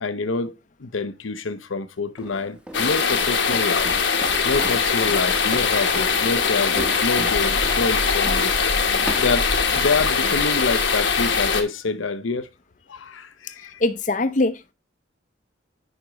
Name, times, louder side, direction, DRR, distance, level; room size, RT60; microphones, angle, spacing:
voice 1, 0.0-3.9 4.4-8.5 9.2-12.5 12.9-13.8, left 3 dB, 85° left, 0.7 m, -27 dB
Walk footsteps, 2.2-9.9, equal, 5° right, 0.9 m, -37 dB
sound 1, 2.7-11.6, left 5 dB, 65° left, 1.1 m, -21 dB
voice 2, 13.8-14.7, left 2 dB, 40° left, 0.6 m, -22 dB
9.5 x 5.1 x 3.0 m
head